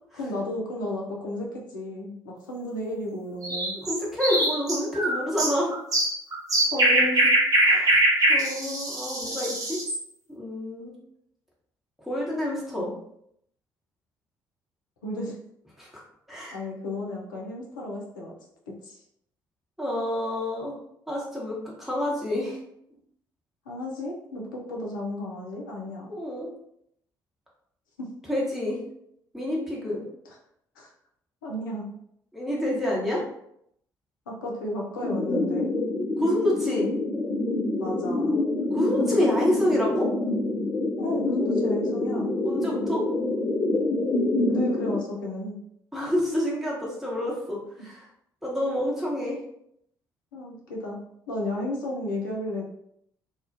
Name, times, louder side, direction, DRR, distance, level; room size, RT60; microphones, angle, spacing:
voice 1, 0.1-3.8 6.7-7.3 15.0-15.4 16.5-18.3 18.8-19.0 23.7-26.1 28.0-28.1 30.8-30.9 31.4-31.8 34.3-35.7 37.8-38.4 41.0-42.3 44.4-45.6 50.3-51.0 51.3-52.7, left 1 dB, 80° left, -2 dB, 0.5 m, -33 dB
sound 1, 3.4-10.0, right 1 dB, 35° right, 0.8 m, -23 dB
voice 2, 3.9-5.7 7.6-7.9 8.3-9.8 10.3-10.9 12.0-12.9 15.8-15.9 16.3-16.6 19.8-20.8 21.1-22.6 26.1-26.5 28.3-28.8 29.3-30.0 32.3-33.2 36.2-36.9 38.7-40.1 42.4-43.0 45.9-48.0 48.4-49.4, left 1 dB, 5° right, -4 dB, 1.1 m, -28 dB
sound 2, 35.0-45.0, left 2 dB, 25° left, 0.4 m, -26 dB
2.4 x 2.1 x 2.5 m, 0.73 s
figure-of-eight pair, 45°, 11 cm